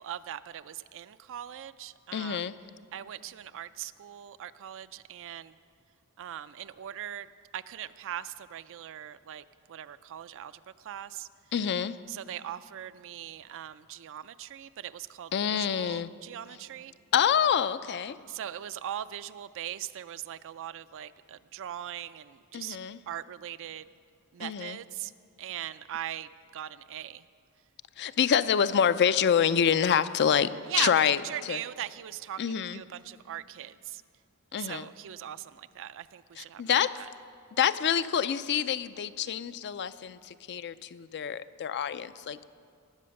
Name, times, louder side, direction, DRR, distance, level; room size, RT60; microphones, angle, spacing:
voice 1, 0.0-2.5 2.9-5.6 6.2-7.3 7.5-11.3 12.1-16.9 18.3-22.8 23.1-23.9 24.3-25.1 25.4-27.2 30.7-34.0 34.6-36.8, right 11 dB, 60° right, 14 dB, 0.4 m, -40 dB
voice 2, 2.1-2.5 11.5-12.0 15.3-16.1 17.1-18.2 22.5-23.0 24.4-24.8 28.0-31.6 32.4-32.8 34.5-34.9 36.4-36.9 37.6-42.4, left 8 dB, 50° left, 15 dB, 0.4 m, -27 dB
18.5 x 7.7 x 6.4 m, 2.3 s
head